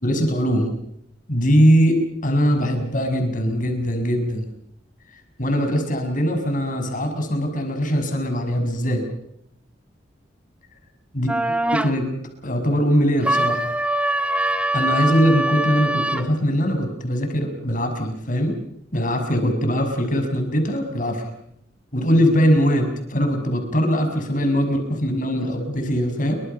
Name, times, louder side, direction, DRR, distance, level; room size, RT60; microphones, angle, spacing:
voice 1, 0.0-0.7 1.3-4.5 5.4-9.0 11.1-11.3 11.8-12.1 12.4-13.6 14.7-18.6 18.9-21.3 21.9-26.4, equal, 45° left, 6 dB, 6.1 m, -21 dB
sound 1, 11.3-11.9 13.2-16.3, right 1 dB, 5° right, 1.4 m, -22 dB
29.5 x 24.5 x 5.6 m, 0.74 s
head